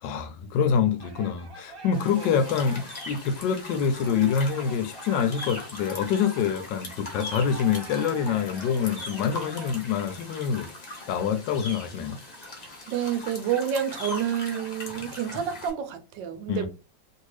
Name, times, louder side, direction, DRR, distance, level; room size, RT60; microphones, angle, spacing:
voice 1, 0.0-10.7 11.1-12.2 16.5-16.7, left 7 dB, 75° left, 1.2 m, -26 dB
sound 1, 1.0-9.7, right 3 dB, 35° right, 1.0 m, -45 dB
sound 2, 1.9-15.7, left 2 dB, 60° left, 0.4 m, -40 dB
voice 2, 12.9-16.7, right 9 dB, 75° right, 1.2 m, -29 dB
2.9 x 2.7 x 3.1 m
omnidirectional pair, 2.1 m